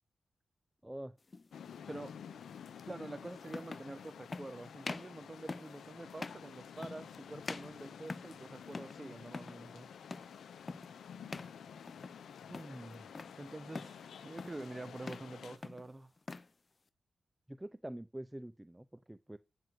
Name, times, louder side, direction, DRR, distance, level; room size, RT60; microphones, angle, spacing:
voice 1, 0.8-1.2 12.5-13.1 17.5-19.4, right 1 dB, 15° right, 0.5 m, -46 dB
sound 1, 1.3-1.5 2.8-2.9 3.5-3.9 4.3-4.5 4.8-5.1 5.5-5.8 6.2-6.5 6.8-7.2 7.4-8.4 8.7-9.0 9.3-9.6 10.1-10.4 10.7-10.9 11.3-11.6 11.9-12.2 12.5-13.3 13.7-14.0 14.4-14.7 15.0-15.3 15.6-16.5, left 3 dB, 45° left, 0.8 m, -44 dB
sound 2, 1.5-15.6, left 7 dB, 85° left, 0.8 m, -51 dB
voice 2, 2.9-9.9 13.4-16.1, right 2 dB, 30° right, 1.1 m, -47 dB
9.2 x 6.2 x 7.7 m
cardioid pair, 45°, 0 cm